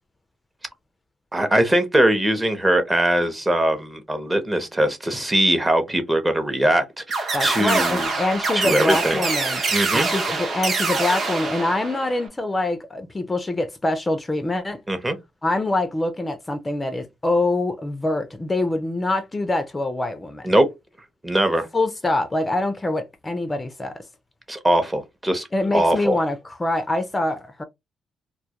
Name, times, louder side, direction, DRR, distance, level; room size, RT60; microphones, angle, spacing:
voice 1, 1.3-8.1 8.5-9.2 9.7-10.1 14.9-15.2 20.4-20.7 21.2-21.7 24.5-25.5 25.7-26.2, right 1 dB, 15° right, 0.6 m, -21 dB
sound 1, 7.1-12.3, right 3 dB, 50° right, 0.8 m, -25 dB
voice 2, 7.3-9.6 9.9-14.8 15.4-20.5 21.7-24.0 25.5-27.6, left 2 dB, 20° left, 0.4 m, -24 dB
2.2 x 2.1 x 2.8 m
cardioid pair, 90°, 0 cm